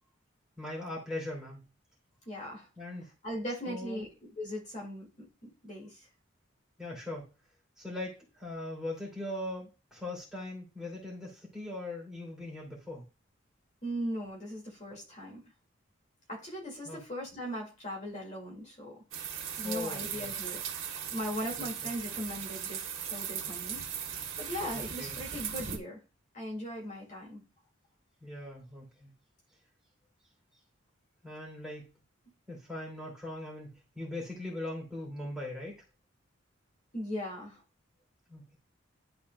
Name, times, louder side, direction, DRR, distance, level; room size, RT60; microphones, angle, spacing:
voice 1, 0.6-1.6 2.7-3.1 3.6-4.0 6.8-7.3 7.8-13.1 16.8-17.0 19.6-20.3 21.6-21.7 24.7-25.2 28.2-29.1 31.2-31.9 32.5-35.7 38.3-38.6, left 1 dB, 5° right, -5 dB, 2.8 m, -40 dB
voice 2, 2.3-2.7 3.2-6.1 13.8-15.4 16.3-20.6 21.1-23.9 24.4-26.0 26.3-27.4 36.9-37.6, equal, 35° left, -3 dB, 2.5 m, -39 dB
sound 1, 19.1-25.8, right 8 dB, 85° right, 1.4 m, -38 dB
11.5 x 4.2 x 2.4 m, 0.30 s
head